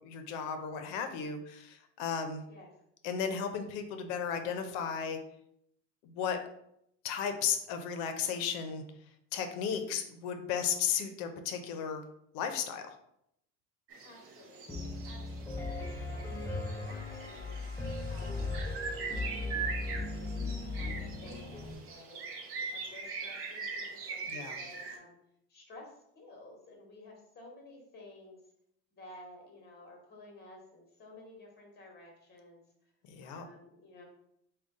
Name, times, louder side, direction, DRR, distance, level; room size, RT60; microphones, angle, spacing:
voice 1, 0.0-2.4 3.0-5.2 6.0-6.4 7.0-8.8 9.3-12.0 12.3-13.0 24.3-24.6 33.1-33.4, left 7 dB, 75° left, 7 dB, 0.7 m, -34 dB
sound 1, 13.9-25.0, right 5 dB, 40° right, 0.6 m, -42 dB
voice 2, 14.0-17.6 18.1-18.6 18.9-22.2 22.7-25.2 25.5-28.4 28.9-32.6 33.2-34.0, left 2 dB, 25° left, 1 dB, 1.2 m, -53 dB
Piano, 14.7-21.7, left 3 dB, 10° left, 0.4 m, -37 dB
3.6 x 2.3 x 3.7 m, 0.75 s
cardioid pair, 130°, 36 cm